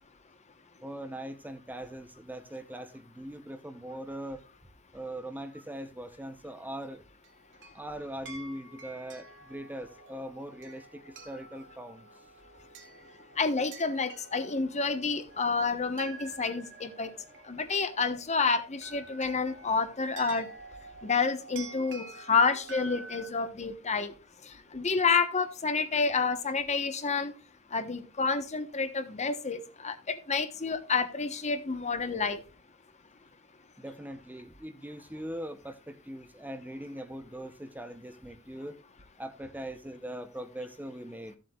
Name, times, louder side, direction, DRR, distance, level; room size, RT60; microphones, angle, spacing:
voice 1, 0.8-4.4 4.9-7.0 7.7-12.1 33.8-38.8 39.2-41.4, right 1 dB, 10° right, 0.7 m, -41 dB
sound 1, 7.2-23.3, right 3 dB, 55° right, 2.4 m, -49 dB
voice 2, 13.4-17.1 17.5-20.5 21.0-24.1 24.4-27.3 27.7-32.4, left 4 dB, 30° left, 1.0 m, -29 dB
15.0 x 7.7 x 2.3 m
head